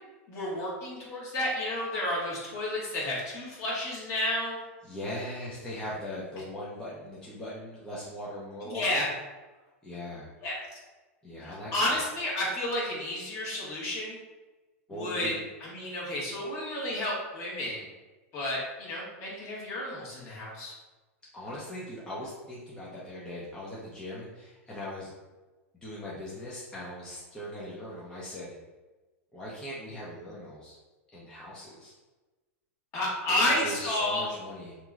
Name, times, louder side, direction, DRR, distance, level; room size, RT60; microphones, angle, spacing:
voice 1, 0.3-4.6 8.7-9.1 10.4-10.6 11.4-14.2 14.9-15.3 15.6-17.9 18.3-20.7 32.9-34.3, left 1 dB, 40° left, -5 dB, 1.3 m, -31 dB
voice 2, 4.8-9.1 9.8-10.3 11.2-12.0 14.9-15.4 21.3-25.1 25.7-28.5 29.3-30.8 31.1-31.9 33.3-34.8, left 1 dB, 10° left, -8 dB, 0.7 m, -40 dB
2.9 x 2.9 x 2.4 m, 1.2 s
hypercardioid pair, 115°, 7 cm